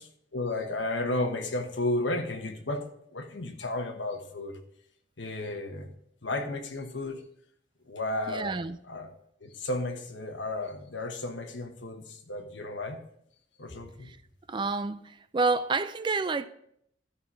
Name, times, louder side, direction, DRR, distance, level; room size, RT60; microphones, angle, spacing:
voice 1, 0.3-4.6 5.2-5.9 6.2-7.2 7.9-8.6 8.9-13.0 13.6-14.1, left 2 dB, 75° left, 1.2 m, -33 dB
voice 2, 8.3-8.8 14.1-14.2 14.5-16.5, right 4 dB, 25° right, 0.3 m, -29 dB
13.0 x 5.7 x 4.9 m
head